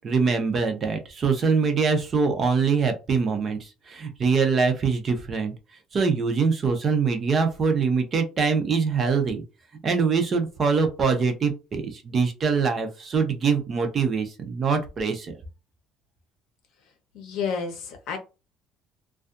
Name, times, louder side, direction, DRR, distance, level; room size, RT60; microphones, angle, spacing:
voice 1, 0.0-5.5 5.9-9.4 9.8-15.4, right 5 dB, 25° right, 6 dB, 0.4 m, -23 dB
voice 2, 17.1-18.2, left 6 dB, 60° left, 5 dB, 0.8 m, -30 dB
2.6 x 2.2 x 2.4 m, 0.29 s
cardioid pair, 180°, 0 cm